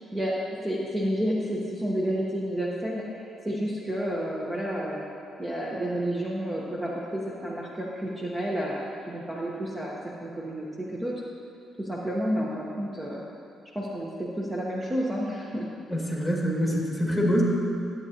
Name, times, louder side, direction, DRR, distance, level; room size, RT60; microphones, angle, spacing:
voice 1, 0.1-5.1 5.4-11.1 11.8-13.2 13.7-15.7, equal, 20° right, -4 dB, 1.0 m, -30 dB
voice 2, 15.9-17.4, equal, 5° right, -4 dB, 2.1 m, -25 dB
12.5 x 8.3 x 2.9 m, 2.6 s
cardioid pair, 90°, 0 cm